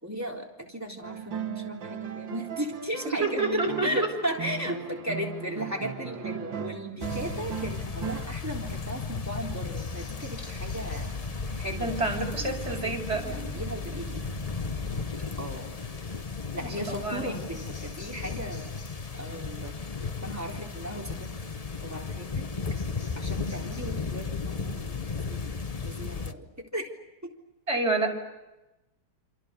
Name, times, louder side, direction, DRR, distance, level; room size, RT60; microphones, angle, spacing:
voice 1, 0.0-11.1 11.6-12.0 12.4-14.3 15.4-15.7 16.5-18.7 19.2-19.7 20.2-21.3 21.8-22.4 23.1-26.9 27.2-27.3, equal, 5° right, 1 dB, 3.5 m, -36 dB
sound 1, 1.0-8.3, right 7 dB, 60° right, 2.4 m, -37 dB
voice 2, 3.2-4.1 11.8-13.4 16.9-17.4 27.7-28.1, right 3 dB, 30° right, 2 dB, 5.8 m, -28 dB
sound 2, 7.0-26.3, left 5 dB, 70° left, 0.3 m, -35 dB
sound 3, 8.7-9.7 9.9-10.0 10.3-15.5, left 2 dB, 15° left, 3.1 m, -39 dB
28.0 x 27.5 x 6.9 m, 1.0 s
omnidirectional pair, 2.4 m